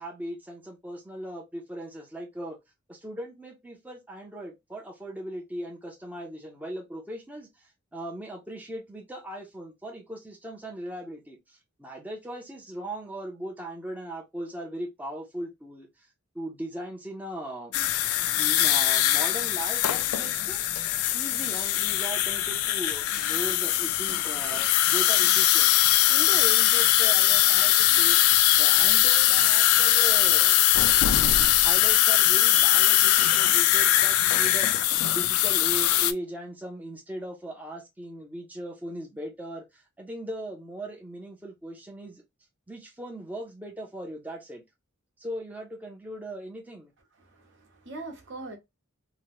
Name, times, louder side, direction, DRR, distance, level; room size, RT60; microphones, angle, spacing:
voice 1, 0.0-2.6 2.9-16.1 16.3-17.8 18.4-20.6 21.1-25.7 26.1-28.2 28.6-30.6 31.4-34.7 35.1-42.2 42.7-44.6 45.2-46.9, right 1 dB, 5° right, 0.5 m, -38 dB
sound 1, 17.7-36.1, left 13 dB, 85° left, 0.3 m, -21 dB
voice 2, 47.1-48.6, right 2 dB, 55° right, 0.9 m, -42 dB
2.9 x 2.1 x 2.9 m
head